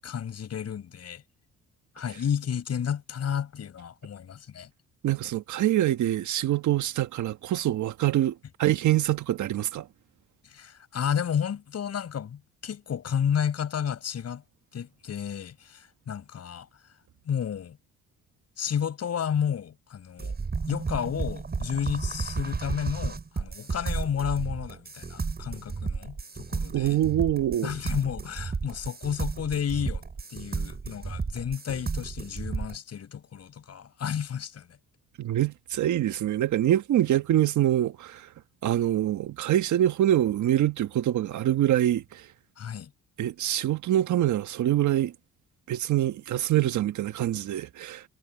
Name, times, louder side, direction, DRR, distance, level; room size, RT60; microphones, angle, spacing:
voice 1, 0.0-1.2 2.0-4.7 10.4-14.4 14.7-16.7 17.3-17.8 18.6-20.4 20.7-27.0 27.6-30.0 30.3-34.7 42.6-42.9, left 8 dB, 55° left, 7.3 m, -31 dB
voice 2, 5.0-9.9 26.7-27.7 35.2-38.3 38.6-42.3 43.2-45.1 45.7-48.0, right 12 dB, 70° right, 1.5 m, -25 dB
sound 1, 20.2-32.8, right 4 dB, 30° right, 7.5 m, -33 dB
cardioid pair, 90°, 30 cm